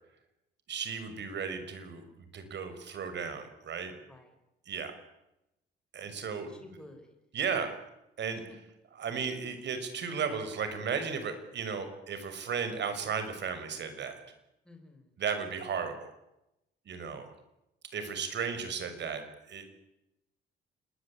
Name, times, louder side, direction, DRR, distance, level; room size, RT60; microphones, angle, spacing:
voice 1, 0.7-3.9 4.7-4.9 5.9-6.5 7.3-7.9 8.2-8.4 9.0-14.2 15.2-16.1 16.9-17.3 17.9-19.2 19.5-19.8, right 6 dB, 60° right, 9 dB, 6.2 m, -35 dB
voice 2, 4.0-4.3 6.4-7.2 8.3-8.6 14.6-15.2 17.1-17.2, left 1 dB, 5° left, 4 dB, 5.5 m, -53 dB
27.5 x 21.0 x 8.8 m, 0.89 s
cardioid pair, 90°, 20 cm